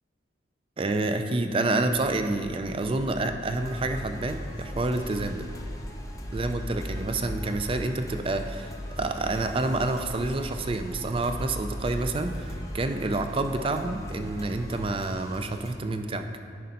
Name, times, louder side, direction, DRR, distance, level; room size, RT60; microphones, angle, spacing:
voice 1, 0.8-5.5 6.3-16.3, right 2 dB, 30° right, 7 dB, 0.4 m, -28 dB
sound 1, 1.9-12.5, equal, ahead, 1.2 m, -43 dB
sound 2, 3.5-15.8, equal, 15° left, 0.6 m, -39 dB
9.7 x 5.3 x 4.1 m, 2.7 s
head